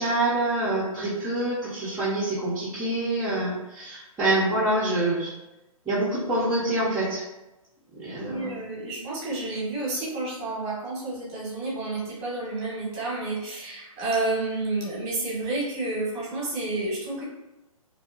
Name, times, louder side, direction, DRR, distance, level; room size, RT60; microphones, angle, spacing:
voice 1, 0.0-5.3 5.9-7.2 8.0-8.5, right 2 dB, 10° right, -12 dB, 0.4 m, -26 dB
voice 2, 8.2-17.2, right 2 dB, 25° right, -6 dB, 0.8 m, -30 dB
2.7 x 2.1 x 2.4 m, 0.99 s
figure-of-eight pair, 125°, 18 cm